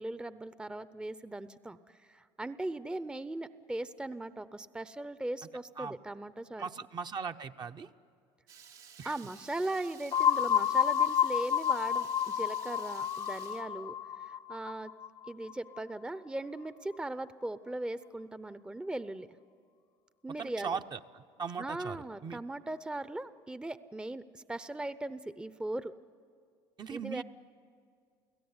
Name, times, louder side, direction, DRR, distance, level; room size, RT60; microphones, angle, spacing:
voice 1, 0.0-6.7 9.0-14.9 15.3-19.3 20.2-20.8 21.6-25.9 26.9-27.2, right 2 dB, 10° right, 14 dB, 0.7 m, -39 dB
voice 2, 6.6-7.9 9.0-9.1 20.4-22.0 22.2-22.4 26.8-27.2, right 6 dB, 35° right, 7 dB, 0.8 m, -39 dB
Water tap faucet / Liquid, 8.5-13.6, right 8 dB, 85° right, 2.4 m, -54 dB
sound 1, 10.1-15.8, left 9 dB, 35° left, 0.6 m, -30 dB
29.5 x 17.0 x 9.7 m, 2.3 s
supercardioid pair, 80°, 12 cm